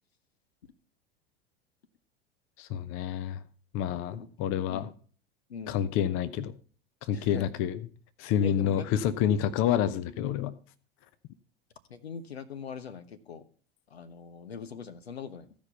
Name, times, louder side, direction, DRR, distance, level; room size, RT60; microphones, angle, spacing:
voice 1, 2.6-3.4 3.7-4.9 5.7-6.5 7.0-7.8 8.2-10.5, left 9 dB, 45° left, 0.8 m, -28 dB
voice 2, 5.5-5.8 7.1-7.5 8.4-9.0 11.9-13.4 13.9-15.5, left 6 dB, 80° left, 1.0 m, -42 dB
15.0 x 5.2 x 5.5 m
figure-of-eight pair, 80°, 31 cm